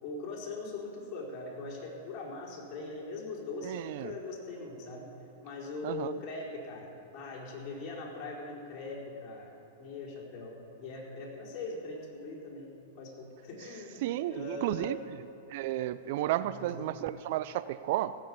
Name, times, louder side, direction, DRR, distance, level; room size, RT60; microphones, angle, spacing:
voice 1, 0.0-5.1 5.4-14.0 14.3-15.0 16.4-17.0, left 3 dB, 40° left, -4 dB, 4.6 m, -41 dB
voice 2, 3.6-4.1 5.8-6.1 14.0-15.0 15.5-18.2, right 14 dB, 60° right, 14 dB, 0.4 m, -32 dB
16.0 x 7.8 x 8.7 m, 2.6 s
hypercardioid pair, 110°, 0 cm